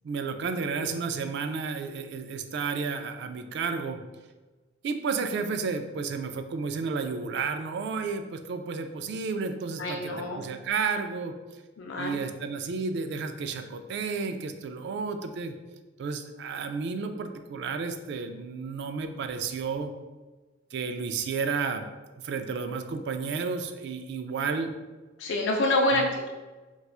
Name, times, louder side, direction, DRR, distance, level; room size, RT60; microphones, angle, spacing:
voice 1, 0.0-4.0 4.8-11.3 12.0-15.5 16.0-19.9 20.7-21.9 22.2-24.7 25.9-26.1, right 5 dB, 65° right, 7 dB, 0.3 m, -32 dB
voice 2, 9.8-10.4 11.8-12.2 25.2-26.3, left 1 dB, 75° left, 1 dB, 0.4 m, -27 dB
4.2 x 2.3 x 2.4 m, 1.2 s
head